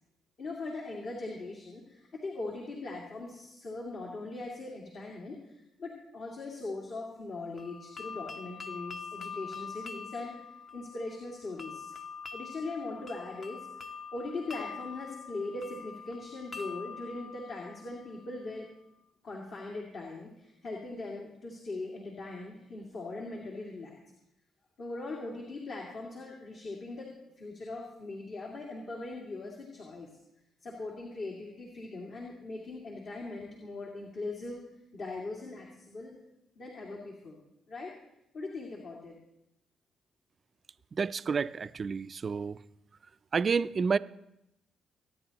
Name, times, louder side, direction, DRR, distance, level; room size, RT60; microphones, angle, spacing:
voice 1, 0.4-10.3 10.7-11.9 12.3-13.7 14.1-18.7 19.2-24.0 24.8-27.1 27.4-30.1 30.6-34.6 34.9-36.2 36.6-37.4 37.7-37.9 38.3-39.1, left 2 dB, 60° left, 2.2 m, -40 dB
sound 1, 7.6-18.4, left 5 dB, 35° left, 0.8 m, -44 dB
voice 2, 40.9-42.6 43.3-44.0, right 5 dB, 40° right, 0.4 m, -29 dB
24.0 x 9.6 x 2.9 m
cardioid pair, 90°, 0 cm